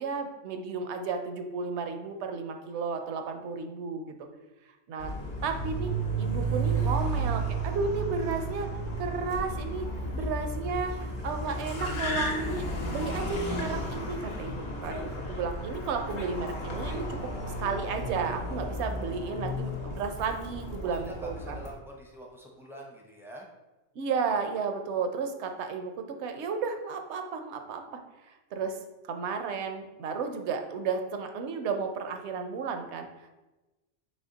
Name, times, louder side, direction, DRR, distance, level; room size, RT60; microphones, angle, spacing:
voice 1, 0.0-4.1 4.9-5.1 5.4-5.9 6.2-8.7 9.0-9.9 10.1-12.7 12.9-15.0 15.3-17.3 17.6-21.6 24.0-27.8 28.5-28.8 29.1-33.1, right 5 dB, 75° right, 6 dB, 0.8 m, -33 dB
Car, 5.0-21.7, right 2 dB, 70° left, 1.1 m, -33 dB
voice 2, 20.8-23.5, equal, 5° right, -1 dB, 0.4 m, -46 dB
4.2 x 3.0 x 3.9 m, 1.1 s
omnidirectional pair, 1.2 m